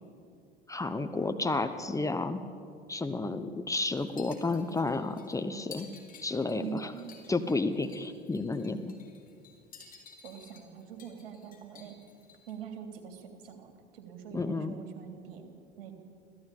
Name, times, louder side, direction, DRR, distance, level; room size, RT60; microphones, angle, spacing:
voice 1, 0.7-2.4 2.9-5.9 6.2-6.9 7.3-8.9 14.3-14.8, left 3 dB, 10° left, 8 dB, 1.0 m, -31 dB
sound 1, 3.9-12.5, left 5 dB, 30° left, 4.2 m, -54 dB
voice 2, 6.5-7.3 10.2-12.0 12.5-15.9, right 8 dB, 65° right, 5 dB, 3.1 m, -44 dB
25.5 x 15.5 x 8.6 m, 2.5 s
figure-of-eight pair, 70°, 30 cm